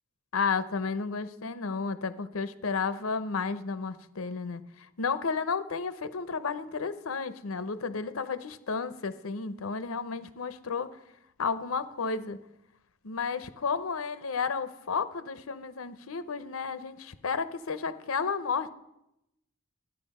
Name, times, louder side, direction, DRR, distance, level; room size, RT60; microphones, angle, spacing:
voice 1, 0.3-11.0 11.4-12.4 13.0-18.7, left 5 dB, 85° left, 14 dB, 0.7 m, -32 dB
13.0 x 9.7 x 5.4 m, 0.86 s
head